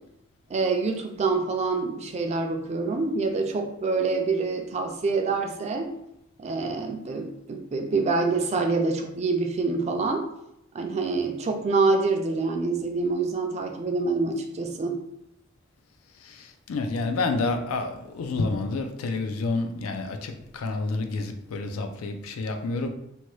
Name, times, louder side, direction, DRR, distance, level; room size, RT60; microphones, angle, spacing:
voice 1, 0.5-5.9 6.4-10.3 10.7-15.0, right 3 dB, 30° right, 4 dB, 0.3 m, -26 dB
voice 2, 16.7-22.9, left 3 dB, 90° left, 6 dB, 0.4 m, -29 dB
2.8 x 2.2 x 3.1 m, 0.82 s
head